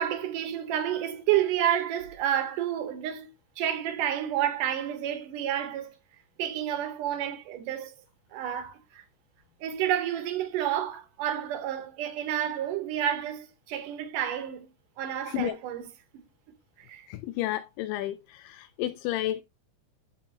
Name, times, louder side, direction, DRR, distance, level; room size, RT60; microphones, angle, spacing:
voice 1, 0.0-3.3 3.6-5.9 6.4-8.0 8.3-9.0 9.6-14.7 15.0-15.9 16.8-17.1, right 10 dB, 70° right, 2.8 m, -30 dB
voice 2, 17.1-19.4, left 14 dB, 80° left, 2.2 m, -31 dB
11.0 x 6.9 x 2.9 m
omnidirectional pair, 3.9 m